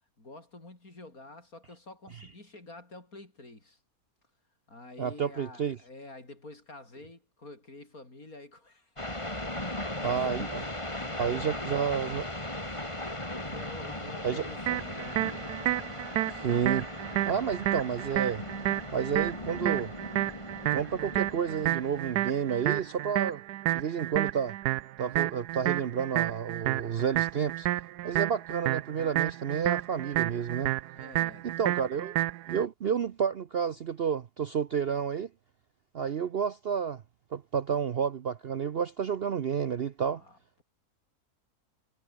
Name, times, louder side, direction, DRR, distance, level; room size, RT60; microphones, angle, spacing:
voice 1, 0.2-3.8 4.7-9.7 10.1-11.8 13.4-15.6 30.9-31.5 40.1-40.6, left 2 dB, 65° left, 6.3 m, -48 dB
voice 2, 5.0-5.8 10.0-10.6 11.2-12.3 14.2-14.5 16.3-16.9 17.3-18.4 18.9-19.9 20.7-23.4 23.7-24.5 25.0-27.7 28.0-30.7 31.4-32.2 32.5-35.3 35.9-37.0 37.3-40.2, right 7 dB, 50° right, 0.7 m, -30 dB
sound 1, 9.0-22.9, left 1 dB, 20° left, 3.8 m, -38 dB
sound 2, 14.7-32.6, right 14 dB, 85° right, 1.2 m, -31 dB
omnidirectional pair, 1.7 m